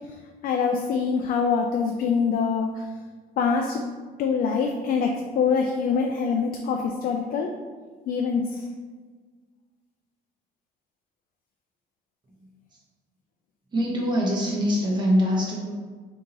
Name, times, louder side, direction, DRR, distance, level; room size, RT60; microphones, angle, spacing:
voice 1, 0.4-2.9 3.4-3.8 4.2-7.6 8.1-8.7, left 5 dB, 60° left, 3 dB, 0.4 m, -24 dB
voice 2, 12.4-12.8 13.7-15.7, equal, 25° right, -4 dB, 1.1 m, -24 dB
3.7 x 2.8 x 3.9 m, 1.5 s
cardioid pair, 110°, 17 cm